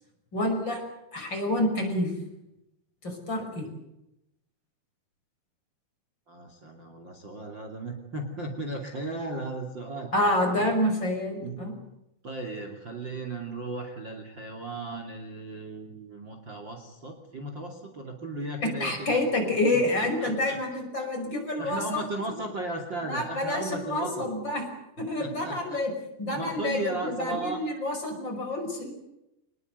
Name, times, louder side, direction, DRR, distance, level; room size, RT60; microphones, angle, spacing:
voice 1, 0.3-0.8 1.1-2.1 3.0-3.7 10.1-11.7 18.6-22.0 23.1-24.6 25.0-25.9 26.2-28.9, left 1 dB, 30° left, 3 dB, 6.2 m, -28 dB
voice 2, 6.3-10.1 10.5-10.6 11.4-11.8 12.2-19.2 20.0-20.6 21.0-21.1 21.6-24.3 25.2-25.8 26.3-27.6, right 2 dB, 35° right, 4 dB, 2.9 m, -36 dB
26.0 x 20.5 x 8.0 m, 0.86 s
omnidirectional pair, 4.4 m